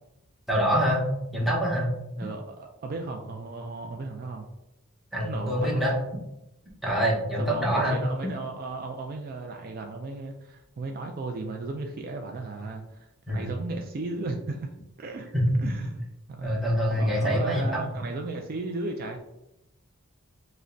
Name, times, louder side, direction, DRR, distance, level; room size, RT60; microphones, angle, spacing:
voice 1, 0.5-1.0 1.3-1.9 5.1-5.9 6.8-8.0 13.3-13.5 15.3-15.5 16.4-17.8, equal, ahead, -5 dB, 0.9 m, -25 dB
voice 2, 2.2-4.4 5.2-6.0 7.4-14.7 15.0-15.3 15.6-19.2, right 3 dB, 45° right, 3 dB, 0.3 m, -35 dB
5.0 x 2.1 x 2.6 m, 0.88 s
head